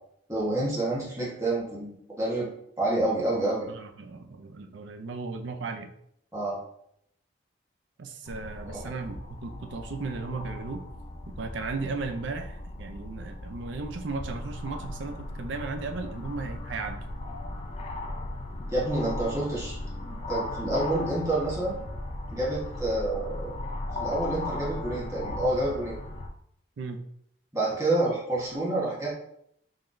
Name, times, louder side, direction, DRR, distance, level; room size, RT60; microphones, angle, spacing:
voice 1, 0.3-2.5 2.8-3.7 6.3-6.6 8.7-8.8 18.7-19.7 20.0-21.8 22.3-23.6 24.0-26.0 27.5-29.1, right 2 dB, 15° right, -6 dB, 1.1 m, -28 dB
voice 2, 3.7-5.9 8.0-10.8 11.3-17.0 26.8-27.0, right 4 dB, 70° right, 6 dB, 0.4 m, -36 dB
sound 1, 8.3-26.3, left 2 dB, 30° left, 0.3 m, -37 dB
3.9 x 3.2 x 2.5 m, 0.71 s
head